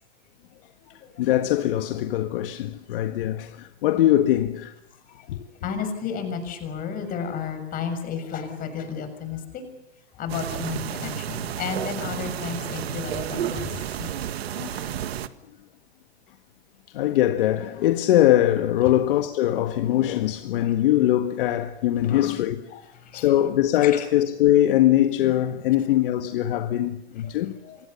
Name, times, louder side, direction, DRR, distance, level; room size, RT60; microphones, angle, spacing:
voice 1, 1.2-4.7 5.3-5.4 14.5-14.9 16.9-22.6 23.1-27.6, left 13 dB, 55° left, 1.7 m, -22 dB
voice 2, 5.6-9.6 10.2-14.1 20.6-20.7 22.0-22.1 22.7-23.3 23.8-24.0 27.2-27.3 27.6-27.8, left 6 dB, 25° left, 6.6 m, -32 dB
sound 1, 10.3-15.3, right 10 dB, 70° right, 1.8 m, -31 dB
29.0 x 25.0 x 7.1 m
hypercardioid pair, 140°, 32 cm